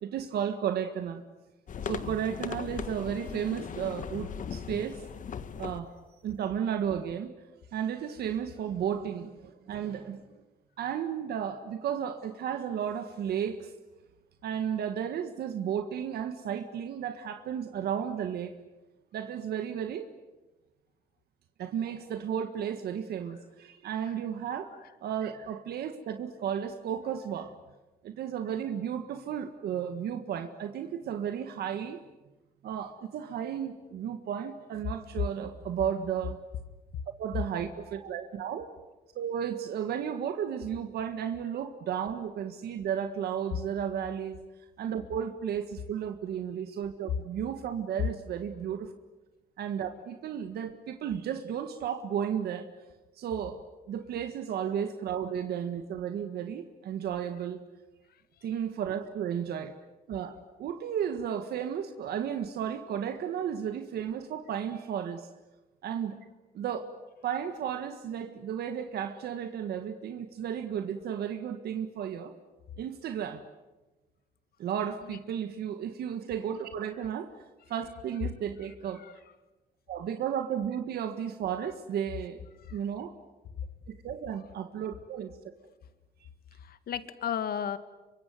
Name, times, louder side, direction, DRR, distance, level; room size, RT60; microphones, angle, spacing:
voice 1, 0.0-1.2 1.8-5.0 5.6-5.9 6.2-7.3 7.7-10.4 10.8-13.7 14.4-18.6 19.1-20.1 21.6-24.7 25.0-27.5 28.0-32.0 32.6-36.4 37.2-38.8 39.2-44.4 44.8-48.9 49.6-52.7 53.2-53.6 53.9-57.6 58.4-59.7 60.1-65.3 65.8-66.2 66.5-66.9 67.2-72.3 72.8-73.4 74.6-77.3 77.7-79.0 79.9-82.4 82.7-83.1 83.9-85.3, right 8 dB, 80° right, 8 dB, 1.7 m, -33 dB
sound 1, 1.7-5.8, left 7 dB, 55° left, 1.7 m, -38 dB
voice 2, 86.6-87.8, left 9 dB, 70° left, 12 dB, 1.9 m, -34 dB
26.5 x 24.5 x 9.3 m, 1.1 s
cardioid pair, 105°, 16 cm